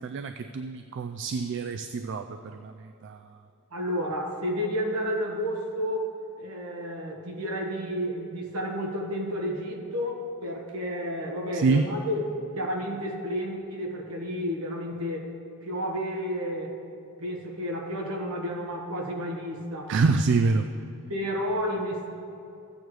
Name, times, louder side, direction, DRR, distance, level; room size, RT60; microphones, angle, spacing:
voice 1, 0.0-3.3 11.5-11.9 19.9-20.7, right 4 dB, 55° right, 8 dB, 0.3 m, -26 dB
voice 2, 3.7-6.1 6.4-15.3 15.6-16.8 17.2-19.9 21.1-22.1, equal, 70° right, 0 dB, 1.3 m, -31 dB
14.0 x 8.5 x 3.1 m, 2.7 s
head